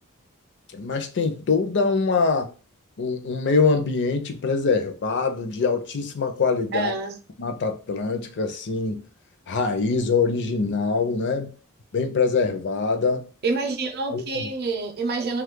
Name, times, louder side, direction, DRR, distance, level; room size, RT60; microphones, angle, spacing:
voice 1, 0.7-2.5 3.0-6.9 7.4-9.0 9.5-11.5 11.9-13.3 14.1-14.5, left 4 dB, 55° left, 0.5 m, -24 dB
voice 2, 6.7-7.2 13.4-15.4, right 3 dB, 45° right, 0.6 m, -27 dB
3.0 x 2.4 x 3.6 m
head